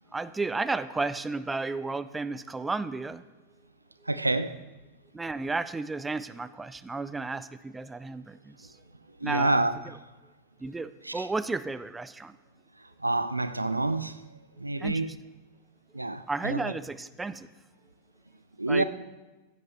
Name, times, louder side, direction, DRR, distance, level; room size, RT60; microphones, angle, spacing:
voice 1, 0.1-3.2 5.1-8.7 9.2-9.7 10.6-12.4 14.8-15.1 16.3-17.5 18.7-18.8, right 3 dB, 10° right, 0.4 m, -33 dB
voice 2, 4.1-4.6 9.2-9.7 11.0-11.3 13.0-14.1 14.6-15.1 15.9-16.8 18.6-18.8, right 2 dB, 85° right, 0.4 m, -27 dB
15.5 x 9.2 x 3.0 m
figure-of-eight pair, 90°, 0 cm